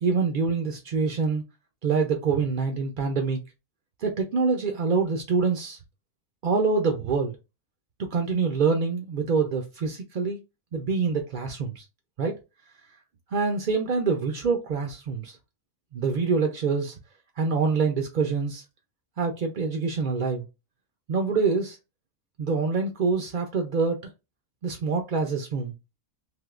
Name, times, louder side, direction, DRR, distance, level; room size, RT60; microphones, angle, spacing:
voice 1, 0.0-1.4 1.8-3.4 4.0-5.8 6.4-7.4 8.1-10.4 10.7-11.8 12.2-12.3 13.3-15.4 15.9-17.0 17.4-18.6 19.2-20.5 21.1-21.8 22.4-24.0 24.6-25.7, right 4 dB, 60° right, 0.5 m, -25 dB
3.5 x 2.7 x 2.4 m
omnidirectional pair, 1.4 m